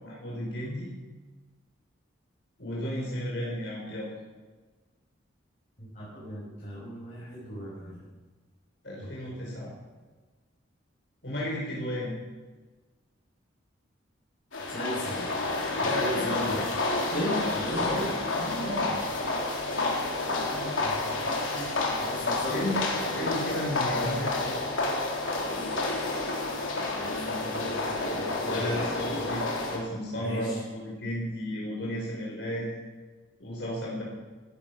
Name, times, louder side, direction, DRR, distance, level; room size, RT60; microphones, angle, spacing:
voice 1, 0.0-0.9 2.6-4.1 8.8-9.7 11.2-12.1 15.8-16.7 17.2-17.3 17.8-18.1 18.6-18.9 22.5-22.8 23.2-24.6 28.5-29.4 29.7-32.8 33.4-34.0, equal, 60° left, -4 dB, 5.1 m, -33 dB
voice 2, 5.8-8.0 9.0-9.1 9.4-9.5 14.7-15.3 15.8-16.7 17.1-18.9 20.4-22.8 23.0-23.3 27.0-29.3 30.2-30.6, equal, 40° left, -9 dB, 5.8 m, -37 dB
sound 1, 14.5-29.8, left 2 dB, 85° left, 3.7 m, -30 dB
16.5 x 12.5 x 6.2 m, 1.3 s
head